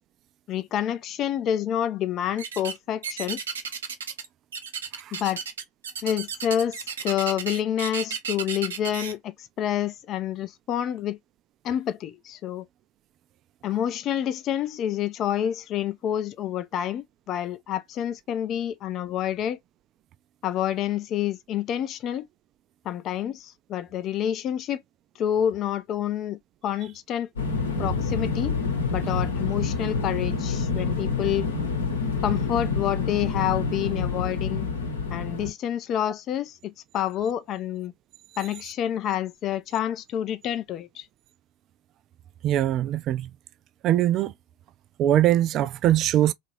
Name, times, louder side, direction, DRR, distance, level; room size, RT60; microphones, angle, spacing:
voice 1, 0.5-3.4 5.1-5.4 6.0-6.8 7.0-11.2 11.6-12.6 13.6-19.6 20.4-22.3 22.9-24.8 25.2-27.3 27.8-28.6 28.9-31.5 32.2-34.7 35.1-37.9 38.4-41.1, left 10 dB, 45° left, 0.4 m, -28 dB
sound 1, 2.4-2.8 3.0-4.3 4.5-9.1, right 6 dB, 80° right, 0.6 m, -33 dB
sound 2, 27.4-35.5, left 4 dB, 80° left, 0.9 m, -27 dB
voice 2, 42.4-43.3 43.8-44.3 45.0-46.3, right 12 dB, 45° right, 0.3 m, -22 dB
2.9 x 2.4 x 3.0 m
hypercardioid pair, 80°, 0 cm